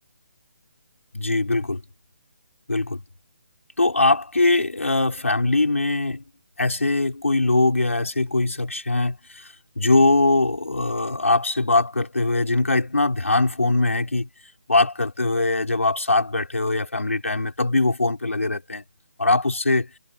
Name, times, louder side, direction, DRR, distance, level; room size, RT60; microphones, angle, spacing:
voice 1, 1.1-1.8 2.7-3.0 3.8-6.2 6.6-9.5 9.8-14.3 14.7-18.8 19.2-19.9, left 2 dB, 90° left, 3.5 m, -21 dB
figure-of-eight pair, 150°, 7 cm